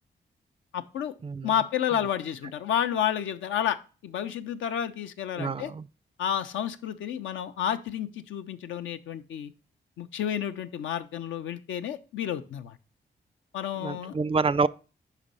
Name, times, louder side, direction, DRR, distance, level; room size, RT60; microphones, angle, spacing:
voice 1, 0.7-1.1 1.4-5.7 6.2-9.5 10.0-12.8 13.5-14.2, left 9 dB, 85° left, 0.5 m, -30 dB
voice 2, 5.4-5.9 13.8-14.7, right 4 dB, 30° right, 0.3 m, -27 dB
5.2 x 5.0 x 5.4 m
supercardioid pair, 50°, 19 cm